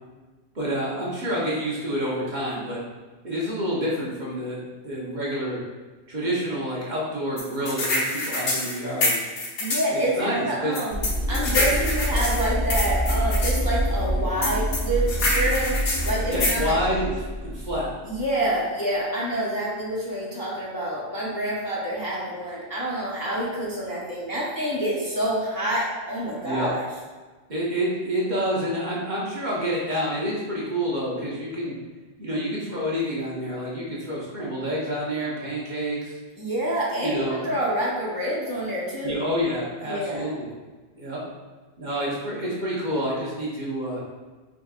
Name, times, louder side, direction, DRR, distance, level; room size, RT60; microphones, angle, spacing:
voice 1, 0.5-2.8 3.2-4.6 4.8-5.6 6.1-9.2 9.9-10.8 11.5-11.6 16.3-17.1 17.4-17.9 26.4-26.7 27.5-31.8 32.2-36.1 37.0-37.5 39.0-40.5 40.9-41.2 41.8-44.0, equal, 45° right, -6 dB, 1.1 m, -28 dB
sound 1, 7.4-9.9 10.7-13.5 14.4-16.6, left 2 dB, 85° left, 1.2 m, -26 dB
voice 2, 9.6-11.0 11.3-16.8 18.0-26.8 36.4-39.2 39.8-40.3, right 1 dB, 20° left, -7 dB, 0.6 m, -27 dB
sound 2, 10.9-18.3, equal, 45° left, 1.2 m, -27 dB
4.9 x 3.8 x 2.4 m, 1.3 s
omnidirectional pair, 1.2 m